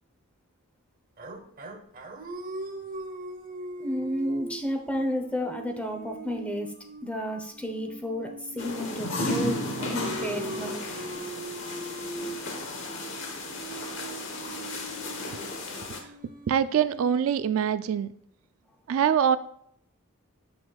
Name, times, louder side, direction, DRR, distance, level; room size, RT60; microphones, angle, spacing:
sound 1, 1.2-9.2 9.8-17.9, right 2 dB, 40° right, 0.8 m, -41 dB
voice 1, 3.8-6.7 7.0-10.8, equal, 5° left, 3 dB, 0.8 m, -32 dB
sound 2, 8.6-16.0, left 2 dB, 60° left, 1.2 m, -34 dB
voice 2, 16.5-18.1 18.9-19.4, right 8 dB, 70° right, 14 dB, 0.3 m, -24 dB
7.7 x 6.1 x 2.3 m, 0.69 s
head